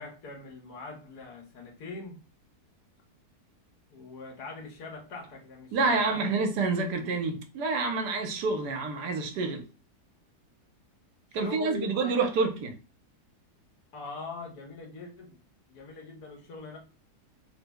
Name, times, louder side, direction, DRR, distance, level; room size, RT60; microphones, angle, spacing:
voice 1, 0.0-2.2 3.9-6.5 11.3-12.3 13.9-15.4 15.7-16.8, left 3 dB, 70° left, 1.5 m, -42 dB
voice 2, 5.7-9.7 11.3-12.7, right 4 dB, 85° right, 1.3 m, -28 dB
3.4 x 2.0 x 3.4 m
omnidirectional pair, 1.7 m